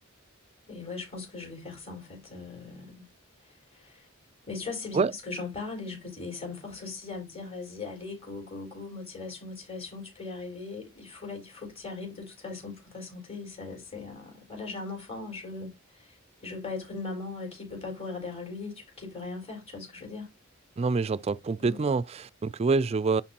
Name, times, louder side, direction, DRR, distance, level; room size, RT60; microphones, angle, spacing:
voice 1, 0.7-3.1 3.7-4.0 4.4-16.2 16.4-20.3 21.6-21.8, left 3 dB, 30° left, 4.7 m, -39 dB
voice 2, 20.8-23.2, right 4 dB, 30° right, 0.3 m, -26 dB
11.0 x 4.6 x 2.9 m
head